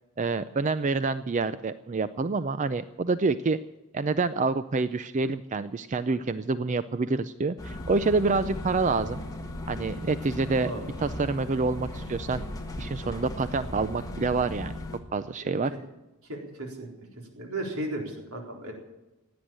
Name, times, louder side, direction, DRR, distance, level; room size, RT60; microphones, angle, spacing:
voice 1, 0.2-3.6 3.9-9.2 9.7-10.7 11.0-12.4 12.8-14.7 15.1-15.7, right 3 dB, 35° right, 13 dB, 0.4 m, -27 dB
sound 1, 7.6-15.0, left 1 dB, 15° left, 1.7 m, -37 dB
voice 2, 15.4-15.8 16.2-16.9 17.3-18.7, right 1 dB, 90° right, 1 dB, 4.2 m, -35 dB
16.5 x 9.6 x 8.9 m, 1.0 s
head